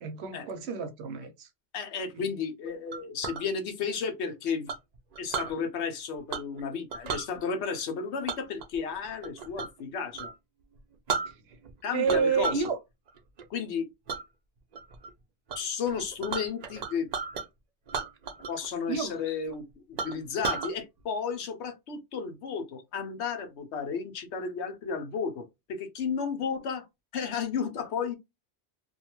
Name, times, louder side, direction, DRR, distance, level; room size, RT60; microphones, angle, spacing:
voice 1, 0.0-1.5 2.1-2.2 11.9-12.8 18.9-19.2, right 6 dB, 80° right, 0.9 m, -29 dB
voice 2, 1.7-4.7 5.2-10.3 11.8-12.6 13.5-13.9 15.5-17.1 18.5-26.9 27.1-28.1, left 6 dB, 90° left, 1.0 m, -33 dB
Chink clink, 2.9-3.4 4.7-5.5 6.3-6.6 6.9-7.3 8.3-9.8 10.1-10.3 10.8-10.9 11.1-11.7 12.1-12.7 13.1-13.4 14.1-14.2 14.7-15.1 15.5-15.6 15.8-17.5 17.9-18.7 18.9-19.0 19.5-19.6 20.0-20.7, right 5 dB, 55° right, 0.4 m, -34 dB
2.6 x 2.3 x 2.8 m
omnidirectional pair, 1.1 m